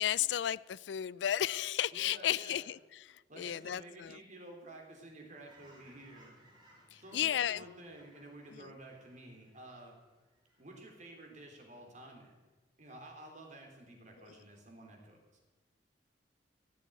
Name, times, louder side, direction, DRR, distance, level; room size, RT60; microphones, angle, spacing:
voice 1, 0.0-4.2 6.9-7.7 8.5-8.7 14.2-14.4, left 11 dB, 70° left, 0.4 m, -34 dB
voice 2, 1.9-2.6 3.3-6.4 7.0-10.0 10.6-12.4 12.8-15.2, right 1 dB, 45° right, 3.5 m, -51 dB
Fowl / Chirp tweet, 5.5-11.3 11.7-11.9, right 1 dB, 25° right, 4.6 m, -64 dB
15.0 x 8.3 x 9.1 m
head